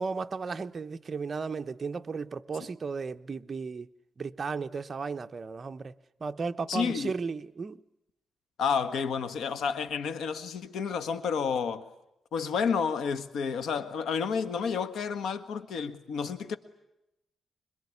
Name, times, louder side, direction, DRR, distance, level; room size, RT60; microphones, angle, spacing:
voice 1, 0.0-3.9 4.2-5.9 6.2-7.8, right 4 dB, 35° right, 0.9 m, -35 dB
voice 2, 6.7-7.1 8.6-11.9 12.3-16.6, left 6 dB, 90° left, 1.7 m, -30 dB
26.0 x 22.5 x 9.7 m
cardioid pair, 125°, 0 cm